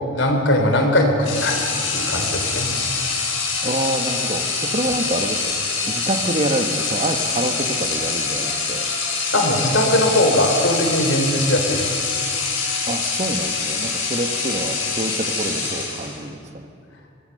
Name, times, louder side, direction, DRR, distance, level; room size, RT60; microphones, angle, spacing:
voice 1, 0.1-2.7 9.3-12.0, left 1 dB, 65° left, 3 dB, 3.8 m, -20 dB
sound 1, 1.2-16.3, left 4 dB, 80° left, 6.7 m, -25 dB
voice 2, 3.6-5.4 5.8-8.9 12.9-16.7, right 1 dB, 35° right, 6 dB, 1.4 m, -26 dB
25.5 x 19.0 x 6.8 m, 2.3 s
head